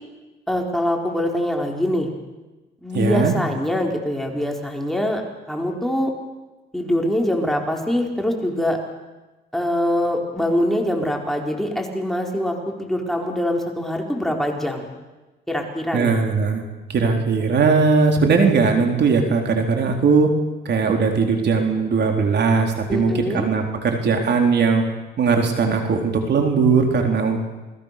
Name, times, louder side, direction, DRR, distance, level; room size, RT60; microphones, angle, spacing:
voice 1, 0.5-2.1 2.8-5.2 5.5-6.1 6.7-8.8 9.5-14.9 15.5-16.2 22.9-23.5, left 1 dB, ahead, 1 dB, 4.7 m, -23 dB
voice 2, 2.9-3.3 15.9-16.6 16.9-20.3 20.6-24.8 25.2-27.4, right 4 dB, 60° right, 3 dB, 4.2 m, -19 dB
28.5 x 20.5 x 6.9 m, 1.1 s
cardioid pair, 90°, 20 cm